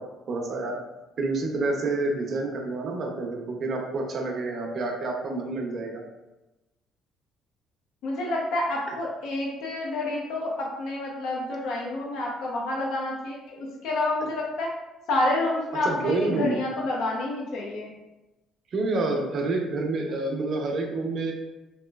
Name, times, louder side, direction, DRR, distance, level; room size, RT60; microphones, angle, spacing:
voice 1, 0.3-0.8 1.2-6.0 15.8-16.6 18.7-21.3, right 2 dB, 45° right, 1 dB, 0.6 m, -28 dB
voice 2, 8.0-14.7 15.1-17.9, left 2 dB, 75° left, -2 dB, 0.6 m, -29 dB
3.0 x 2.9 x 2.3 m, 1.0 s
cardioid pair, 115°, 0 cm